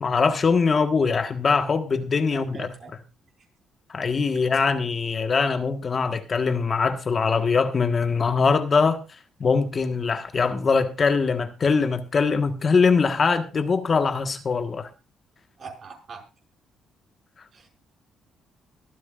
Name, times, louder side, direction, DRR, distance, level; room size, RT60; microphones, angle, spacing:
voice 1, 0.0-2.7 3.9-9.0 9.4-14.9, left 5 dB, 40° left, 1.4 m, -22 dB
voice 2, 2.3-2.9 15.6-16.2 17.5-17.7, right 4 dB, 50° right, 5.8 m, -41 dB
23.5 x 9.4 x 2.5 m
cardioid pair, 105°, 0 cm